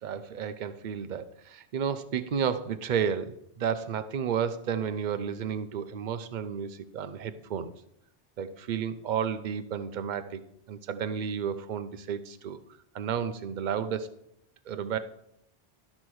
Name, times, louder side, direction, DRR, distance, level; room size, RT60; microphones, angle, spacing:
voice 1, 0.0-7.7 8.4-10.4 10.7-12.6 12.9-14.1 14.7-15.0, right 7 dB, 50° right, 11 dB, 0.7 m, -32 dB
12.0 x 4.3 x 6.2 m, 0.77 s
omnidirectional pair, 1.1 m